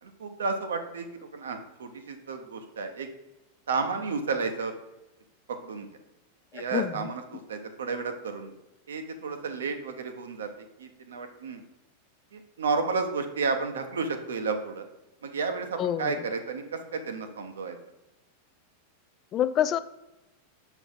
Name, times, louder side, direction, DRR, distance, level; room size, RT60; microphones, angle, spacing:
voice 1, 0.0-3.1 3.7-4.7 5.5-5.9 6.5-8.5 8.9-11.6 12.3-14.8 15.2-17.8, right 4 dB, 65° right, 7 dB, 0.8 m, -32 dB
voice 2, 6.5-7.1 15.8-16.2 19.3-19.8, left 10 dB, 30° left, 15 dB, 0.3 m, -27 dB
6.8 x 4.5 x 3.9 m, 0.99 s
figure-of-eight pair, 90°, 0 cm